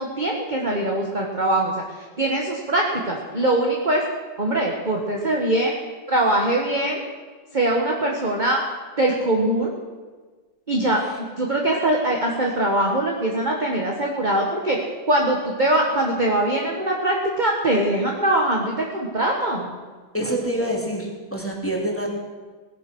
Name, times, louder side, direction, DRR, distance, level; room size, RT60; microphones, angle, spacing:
voice 1, 0.0-4.0 4.4-5.7 6.1-7.0 7.5-8.6 9.0-9.7 10.7-11.0 11.4-19.8, right 1 dB, 25° right, -1 dB, 1.6 m, -22 dB
voice 2, 20.1-22.1, right 1 dB, 5° left, -1 dB, 2.7 m, -26 dB
18.5 x 10.5 x 6.3 m, 1.4 s
omnidirectional pair, 2.3 m